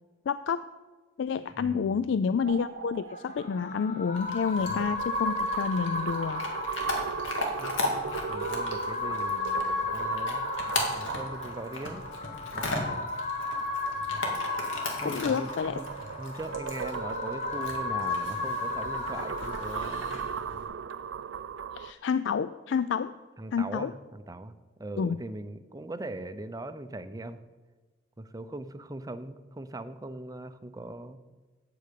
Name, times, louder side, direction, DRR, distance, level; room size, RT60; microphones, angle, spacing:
voice 1, 0.3-0.7 1.2-6.4 15.0-15.8 21.7-23.2 23.5-23.9 25.0-25.2, left 6 dB, 65° left, 13 dB, 0.3 m, -29 dB
voice 2, 1.6-2.1 7.6-10.5 10.9-12.0 12.5-13.1 15.0-15.9 16.2-20.3 23.4-27.4 28.2-31.2, right 2 dB, 20° right, 10 dB, 0.6 m, -40 dB
sound 1, 2.4-13.0 15.0-21.9, right 7 dB, 75° right, 0.4 m, -38 dB
sound 2, 3.1-20.1, left 3 dB, 40° left, 1.1 m, -34 dB
Chewing mastication / Dog, 4.1-20.7, left 2 dB, 85° left, 2.2 m, -37 dB
8.4 x 7.7 x 8.4 m, 1.3 s
head